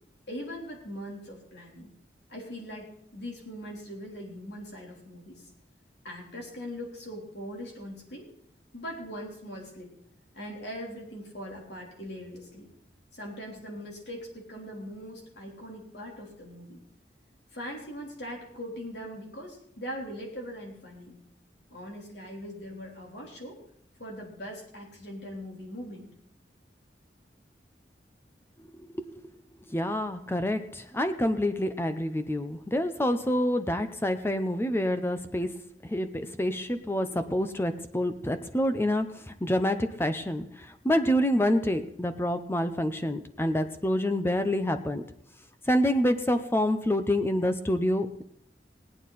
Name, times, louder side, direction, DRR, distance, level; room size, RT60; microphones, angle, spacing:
voice 1, 0.3-1.9 2.3-5.5 6.0-8.3 8.7-9.9 10.3-12.7 13.1-16.8 17.5-21.1 21.7-23.6 24.0-26.1, equal, 75° left, 0 dB, 3.5 m, -41 dB
voice 2, 29.7-45.0 45.7-48.2, left 1 dB, 15° left, 9 dB, 0.6 m, -27 dB
19.0 x 9.4 x 4.1 m, 0.70 s
head